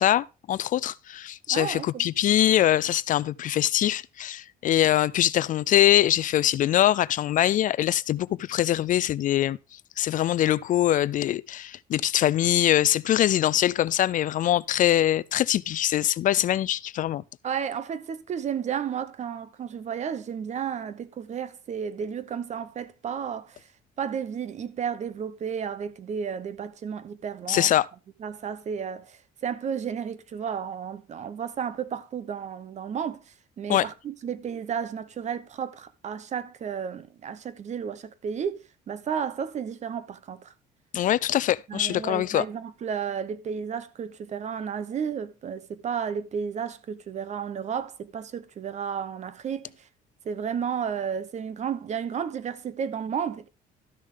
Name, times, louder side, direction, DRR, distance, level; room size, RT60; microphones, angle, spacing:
voice 1, 0.0-9.6 10.0-17.2 27.5-27.9 33.7-33.9 40.9-42.4, left 12 dB, 50° left, 0.4 m, -23 dB
voice 2, 1.5-2.1 17.4-23.6 24.0-27.7 28.2-38.6 38.9-40.5 41.7-49.9 50.2-53.5, right 7 dB, 45° right, 0.9 m, -32 dB
13.0 x 6.4 x 3.7 m
cardioid pair, 110°, 17 cm